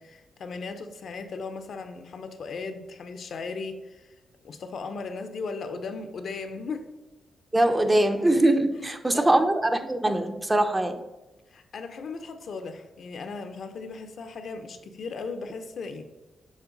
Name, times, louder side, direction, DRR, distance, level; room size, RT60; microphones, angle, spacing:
voice 1, 0.0-4.1 4.4-6.9 8.7-9.3 11.5-16.0, left 4 dB, 65° left, 8 dB, 0.7 m, -37 dB
voice 2, 7.5-11.0, right 1 dB, 20° right, 7 dB, 0.6 m, -22 dB
7.2 x 4.4 x 3.9 m, 1.1 s
cardioid pair, 80°, 0 cm